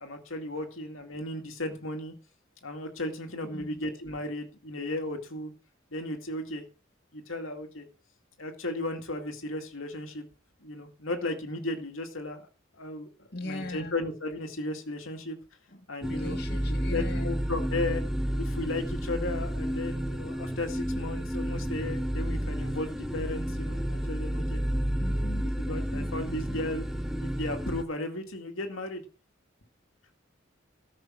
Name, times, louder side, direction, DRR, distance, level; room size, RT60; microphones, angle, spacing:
voice 1, 0.0-2.1 2.6-5.5 5.9-6.6 7.1-7.9 8.4-10.3 10.6-12.4 12.7-15.4 15.9-16.4 16.7-18.0 18.4-24.6 25.6-26.9 27.2-29.0, left 2 dB, 85° left, 4 dB, 2.2 m, -35 dB
voice 2, 13.3-13.9 15.7-17.4 25.0-25.5 25.9-26.6, left 1 dB, 50° left, 3 dB, 2.1 m, -40 dB
sound 1, 16.0-27.8, equal, ahead, 1.0 m, -31 dB
14.0 x 6.1 x 6.3 m, 0.34 s
head